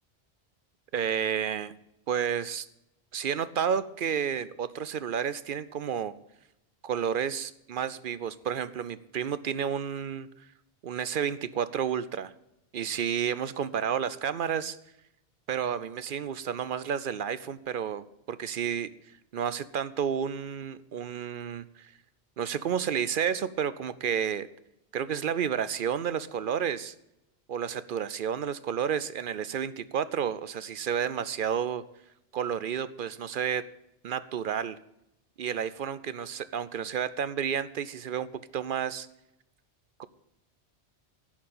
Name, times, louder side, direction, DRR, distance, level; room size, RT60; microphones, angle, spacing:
voice 1, 0.9-1.7 2.1-2.7 3.1-6.1 6.8-10.3 10.8-12.3 12.7-14.8 15.5-18.9 19.3-21.9 22.4-24.5 24.9-26.9 27.5-31.8 32.3-33.7 34.0-34.8 35.4-39.1 40.0-40.1, right 8 dB, 60° right, 15 dB, 0.6 m, -31 dB
11.0 x 6.0 x 8.4 m, 0.84 s
omnidirectional pair, 1.1 m